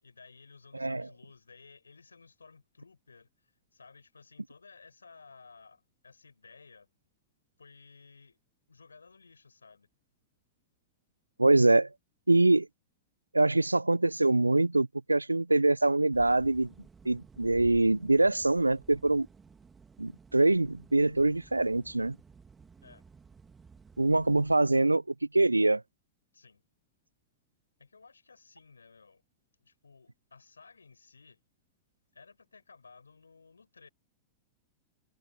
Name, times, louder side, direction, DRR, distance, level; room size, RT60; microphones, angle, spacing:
voice 1, 0.0-6.9 7.6-8.4 8.7-9.9 22.8-23.0 26.3-26.6 27.8-29.2 29.6-31.4 32.1-33.9, left 4 dB, 80° left, 6.2 m, -56 dB
voice 2, 11.4-11.9 12.3-12.7 13.3-16.7 17.1-19.3 20.0-22.2 24.0-25.8, right 2 dB, 90° right, 0.3 m, -24 dB
sound 1, 16.1-24.6, right 5 dB, 15° right, 2.4 m, -55 dB
figure-of-eight pair, 95°, 0 cm